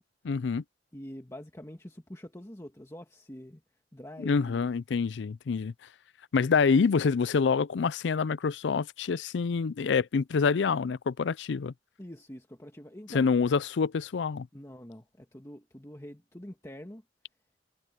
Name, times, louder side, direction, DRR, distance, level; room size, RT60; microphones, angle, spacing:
voice 1, 0.2-0.6 4.2-5.7 6.3-11.7 13.1-14.5, left 5 dB, 80° left, 0.4 m, -26 dB
voice 2, 0.9-3.6 3.9-4.7 12.0-13.3 14.5-17.0, equal, 15° left, 1.6 m, -45 dB
head